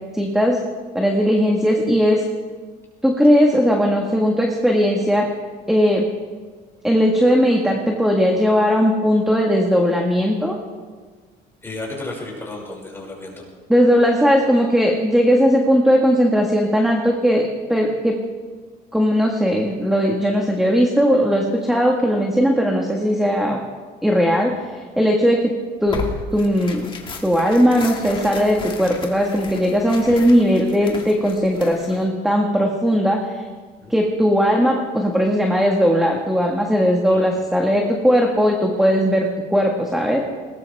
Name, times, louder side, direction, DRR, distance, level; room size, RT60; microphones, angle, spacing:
voice 1, 0.1-0.6 0.9-2.2 3.0-5.3 5.7-6.0 6.8-10.6 13.7-18.2 18.9-23.6 24.0-25.5 25.8-26.0 26.3-26.9 27.2-33.3 33.9-40.2, equal, ahead, 0 dB, 1.7 m, -18 dB
voice 2, 11.6-13.4 24.5-24.6 30.1-30.4 33.8-33.9 37.1-37.3, left 2 dB, 15° left, -2 dB, 6.1 m, -33 dB
Tearing, 25.9-32.0, left 4 dB, 30° left, 2.2 m, -35 dB
21.0 x 19.5 x 3.6 m, 1.5 s
cardioid pair, 135°, 18 cm